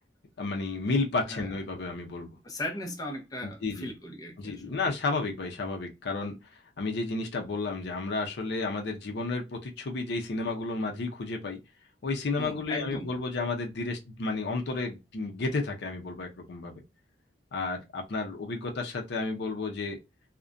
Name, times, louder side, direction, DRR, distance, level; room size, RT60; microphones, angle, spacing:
voice 1, 0.4-2.4 3.4-3.9 4.4-6.4 6.8-11.6 12.0-16.8 17.5-20.0, left 3 dB, 65° left, 0.5 m, -32 dB
voice 2, 2.4-4.8 12.4-13.1, left 1 dB, 20° left, 0.6 m, -37 dB
2.4 x 2.1 x 2.4 m
head